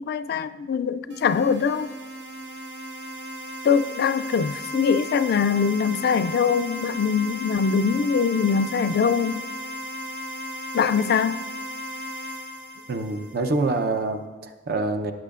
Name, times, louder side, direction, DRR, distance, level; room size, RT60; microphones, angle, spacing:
voice 1, 0.0-1.9 3.6-9.5 10.7-11.4, left 6 dB, 60° left, 0.3 m, -23 dB
sound 1, 1.1-13.8, equal, 75° right, 1.2 m, -36 dB
voice 2, 12.9-15.1, right 3 dB, 55° right, 0.7 m, -26 dB
15.5 x 8.5 x 2.5 m
head